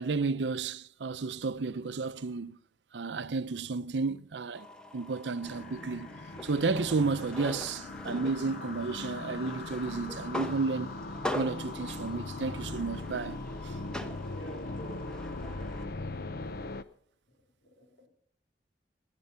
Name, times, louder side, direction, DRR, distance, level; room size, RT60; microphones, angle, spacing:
voice 1, 0.0-2.6 2.9-4.7 4.9-6.1 6.4-11.0 11.3-13.8, right 4 dB, 85° right, 0.6 m, -32 dB
sound 1, 4.5-15.9, left 1 dB, 5° left, 1.1 m, -42 dB
sound 2, 5.4-16.8, left 2 dB, 60° left, 0.8 m, -40 dB
voice 2, 14.2-15.7 17.3-17.4 17.6-18.1, right 1 dB, 80° left, 4.0 m, -49 dB
18.0 x 10.5 x 5.6 m
head